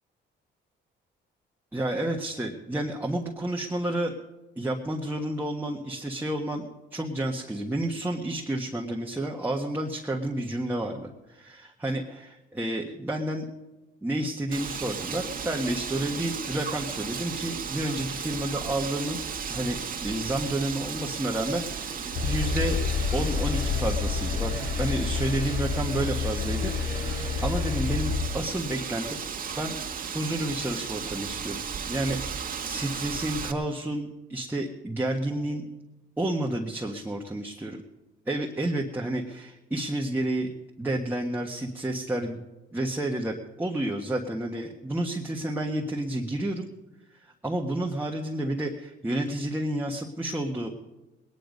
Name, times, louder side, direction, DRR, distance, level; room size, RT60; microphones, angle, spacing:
voice 1, 1.7-4.1 4.6-13.4 14.0-19.2 19.5-22.8 23.1-29.2 29.6-29.8 30.0-31.6 31.9-35.7 36.2-37.8 38.3-40.5 40.8-42.5 42.7-46.7 47.2-50.7, right 1 dB, 10° right, -1 dB, 1.5 m, -30 dB
Wind, 14.5-33.5, right 6 dB, 45° right, 1.6 m, -35 dB
sound 1, 22.1-28.3, left 5 dB, 70° left, 4.4 m, -28 dB
20.5 x 10.0 x 5.3 m, 1.1 s
cardioid pair, 90°, 20 cm